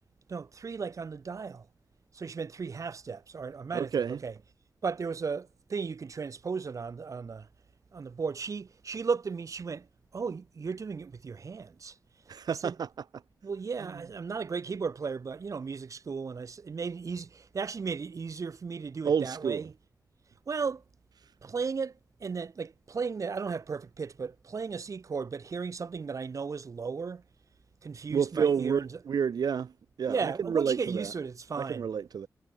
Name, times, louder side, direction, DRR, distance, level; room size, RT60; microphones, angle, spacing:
voice 1, 0.3-1.7 2.1-4.4 4.8-7.5 7.9-9.9 10.1-12.0 12.5-12.8 13.4-19.7 20.5-20.8 21.4-27.2 27.8-29.0 30.1-31.9, right 5 dB, 55° right, 7.8 m, -35 dB
voice 2, 3.7-4.2 12.3-12.9 19.0-19.6 28.1-29.7 30.0-31.1 31.6-32.3, right 7 dB, 80° right, 3.2 m, -29 dB
wide cardioid pair, 115°, 7 cm